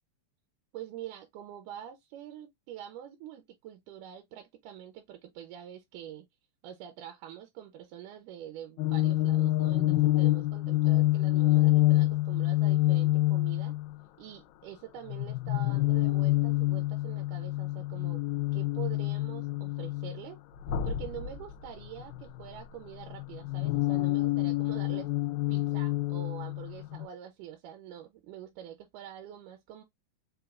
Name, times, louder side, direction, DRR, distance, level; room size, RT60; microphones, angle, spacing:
voice 1, 0.7-6.3 6.6-13.8 14.2-18.2 18.5-20.4 20.8-25.1 25.5-29.8, right 10 dB, 75° right, 2.0 m, -45 dB
sound 1, 8.8-13.9 15.1-20.2 20.6-22.6 23.0-27.1, left 17 dB, 80° left, 2.3 m, -27 dB
5.7 x 2.3 x 2.4 m
omnidirectional pair, 4.0 m